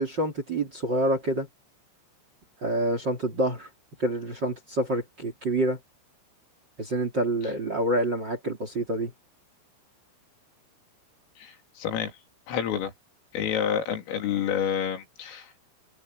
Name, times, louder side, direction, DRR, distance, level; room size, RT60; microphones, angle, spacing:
voice 1, 0.0-1.5 2.6-3.7 4.0-5.8 6.8-9.1, right 1 dB, 25° right, 2.8 m, -27 dB
voice 2, 11.4-12.2 12.5-12.9 13.3-15.5, left 8 dB, 80° left, 6.0 m, -29 dB
omnidirectional pair, 5.8 m